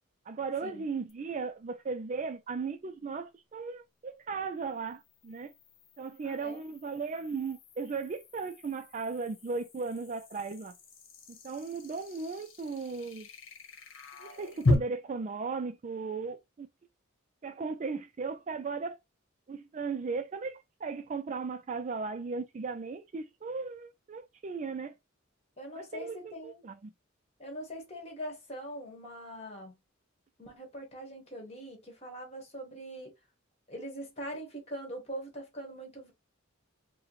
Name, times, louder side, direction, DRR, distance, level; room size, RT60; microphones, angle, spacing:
voice 1, 0.3-5.5 6.0-10.7 11.3-13.3 14.2-16.7 17.4-19.0 19.5-24.9 25.8-26.2 26.4-26.9, right 4 dB, 35° right, 0.3 m, -36 dB
sound 1, 1.1-1.2 4.6-14.7, left 2 dB, 65° left, 1.0 m, -37 dB
voice 2, 6.2-6.7 25.6-26.7 27.4-29.7 30.4-33.1 33.7-36.1, equal, 30° left, 1.5 m, -42 dB
4.8 x 2.2 x 3.1 m
head